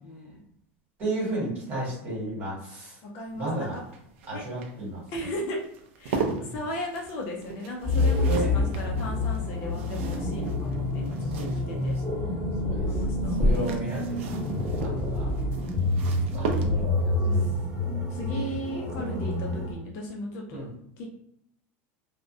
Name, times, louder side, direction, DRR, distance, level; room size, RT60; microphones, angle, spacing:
voice 1, 0.0-0.4 3.0-3.7 4.3-4.4 5.1-5.6 6.0-11.3 11.5-12.0 12.6-13.7 16.6-16.7 17.2-17.6 18.1-20.7 21.0-21.1, left 1 dB, 40° left, 0 dB, 0.4 m, -36 dB
voice 2, 1.0-3.0 3.3-3.8 4.3-5.0 6.3-6.6 8.2-8.5 9.6-10.0 11.0-12.3 12.6-13.0 13.4-14.3 14.8-15.3 16.3-17.3 18.3-18.5 20.5-20.7, right 2 dB, 30° right, -6 dB, 1.2 m, -34 dB
sound 1, 3.3-12.1 13.2-17.1 18.7-19.1 19.3-19.4, right 3 dB, 85° right, 0.4 m, -38 dB
sound 2, 7.8-19.7, left 2 dB, ahead, 0.7 m, -27 dB
2.4 x 2.0 x 2.5 m, 0.71 s
supercardioid pair, 180°, 6 cm